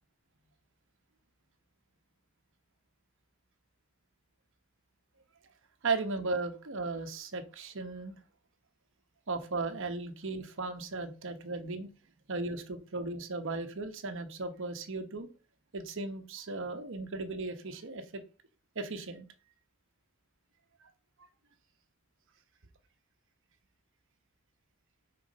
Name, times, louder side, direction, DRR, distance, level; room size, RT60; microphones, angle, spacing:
voice 1, 5.8-8.1 9.3-11.9 12.3-15.3 15.7-18.2 18.7-19.3, right 3 dB, 65° right, 7 dB, 1.0 m, -36 dB
5.7 x 3.8 x 5.2 m, 0.35 s
head